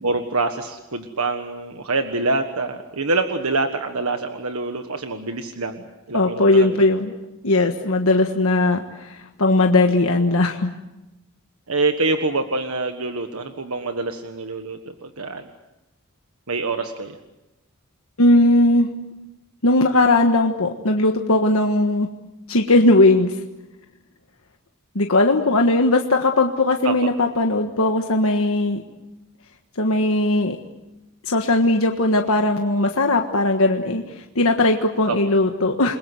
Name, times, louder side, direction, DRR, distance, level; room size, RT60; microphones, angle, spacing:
voice 1, 0.0-6.8 11.7-15.5 16.5-17.2 26.8-27.1 35.1-35.2, right 3 dB, 75° right, 7 dB, 1.5 m, -25 dB
voice 2, 6.1-7.1 7.4-10.7 18.2-18.9 19.6-22.1 22.5-23.4 24.9-28.8 29.8-30.6 31.3-36.0, left 2 dB, 70° left, 3 dB, 1.5 m, -18 dB
29.0 x 21.5 x 7.9 m, 0.98 s
head